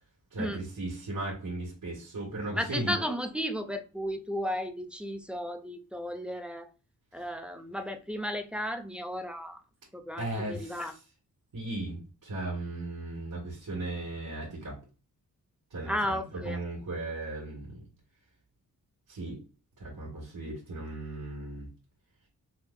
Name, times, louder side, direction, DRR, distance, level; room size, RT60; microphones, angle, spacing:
voice 1, 0.3-2.9 10.2-10.9 11.5-14.8 15.7-17.8 19.1-19.4 19.8-21.7, right 2 dB, 70° right, -5 dB, 2.1 m, -36 dB
voice 2, 2.5-6.7 7.1-9.6 9.9-10.9 15.9-16.6, equal, 5° right, 6 dB, 0.4 m, -34 dB
5.6 x 2.2 x 2.6 m, 0.34 s
wide cardioid pair, 165°, 36 cm